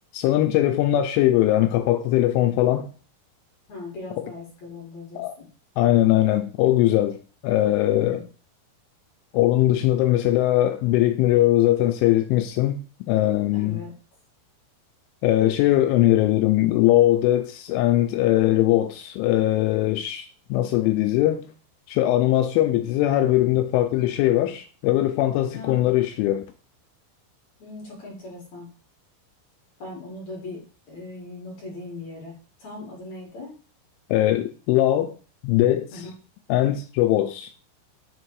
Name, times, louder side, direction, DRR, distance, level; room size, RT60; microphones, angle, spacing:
voice 1, 0.1-2.9 5.2-5.3 5.8-7.2 7.4-8.2 9.3-12.8 13.1-13.8 15.2-21.5 21.9-26.4 34.1-35.1 35.4-36.0 36.5-37.5, left 14 dB, 85° left, 2.9 m, -20 dB
voice 2, 3.7-5.5 8.0-8.2 13.5-13.9 25.5-25.9 27.6-28.7 29.8-30.6 30.9-32.3 32.6-33.6 35.9-36.1, left 2 dB, 50° left, 2.3 m, -39 dB
7.2 x 3.4 x 4.7 m
omnidirectional pair, 5.8 m